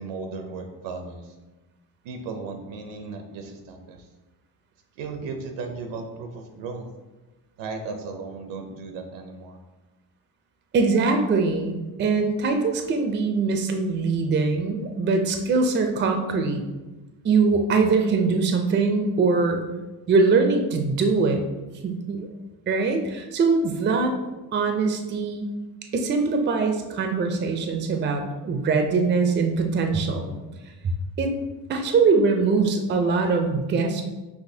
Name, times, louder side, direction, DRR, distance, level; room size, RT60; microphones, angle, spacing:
voice 1, 0.0-1.4 2.0-4.1 5.0-6.9 7.6-9.6, right 4 dB, 75° right, 5 dB, 0.7 m, -36 dB
voice 2, 10.7-16.6 17.2-19.6 20.1-21.4 21.8-22.3 22.7-24.1 24.5-25.5 25.9-30.3 30.8-31.3 31.7-34.0, right 4 dB, 25° right, 4 dB, 0.4 m, -22 dB
6.0 x 2.9 x 2.7 m, 1.1 s
cardioid pair, 115°, 44 cm